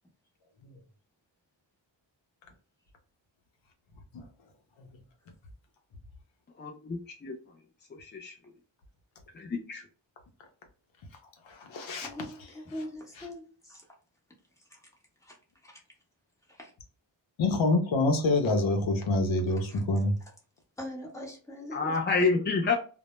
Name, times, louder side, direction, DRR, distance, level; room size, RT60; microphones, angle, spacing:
voice 1, 6.6-7.3 8.0-8.3 9.4-9.8 21.7-22.7, left 4 dB, 25° left, 1 dB, 0.3 m, -28 dB
voice 2, 11.5-12.1 17.4-20.2, left 2 dB, 75° left, 4 dB, 0.7 m, -26 dB
voice 3, 12.0-13.9 14.7-14.9 15.2-15.4 15.6-15.8 16.5-16.7 19.7-19.8 20.8-22.0, left 1 dB, 5° left, -1 dB, 0.9 m, -42 dB
2.1 x 2.1 x 2.9 m, 0.37 s
cardioid pair, 70°, 46 cm